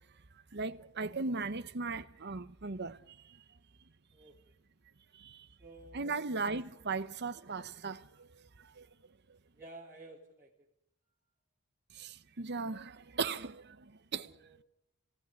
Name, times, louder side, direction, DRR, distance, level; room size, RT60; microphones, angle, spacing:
voice 1, 0.5-3.0 5.9-8.0 12.4-13.6 14.1-14.3, right 4 dB, 50° right, 1.0 m, -36 dB
voice 2, 5.6-6.2 9.6-10.7 14.2-14.6, right 2 dB, 15° right, 3.3 m, -53 dB
27.5 x 19.0 x 9.7 m
head